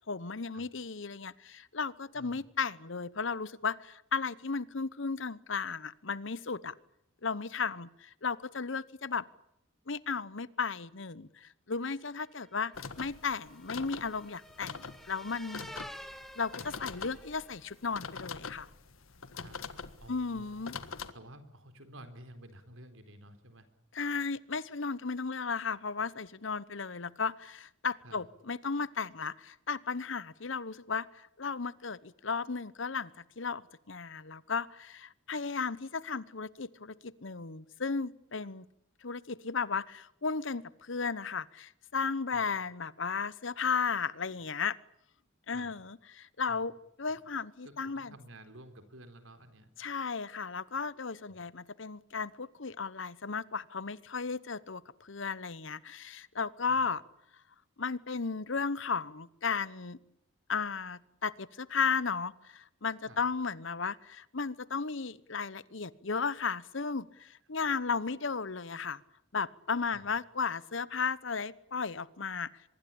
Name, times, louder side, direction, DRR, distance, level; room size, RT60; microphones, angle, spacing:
voice 1, 0.1-6.7 7.2-9.3 9.9-15.7 16.4-18.7 20.1-20.7 23.9-33.1 33.4-38.7 39.0-44.8 45.5-46.7 47.0-48.1 49.8-57.0 57.8-60.0 60.5-69.0 69.3-72.5, left 5 dB, 65° left, 19 dB, 1.0 m, -35 dB
sound 1, 12.3-17.7, equal, ahead, 1.4 m, -50 dB
sound 2, 12.7-21.1, left 5 dB, 85° left, 1.7 m, -44 dB
voice 2, 20.0-20.7 21.1-23.7 25.3-25.4 28.0-28.2 42.3-42.5 45.5-45.7 46.5-46.7 47.0-47.2 47.6-49.7 51.3-51.4 56.7-56.8 63.1-63.2 69.9-70.1, right 1 dB, 75° right, 9 dB, 4.0 m, -52 dB
24.5 x 22.0 x 8.7 m, 0.76 s
head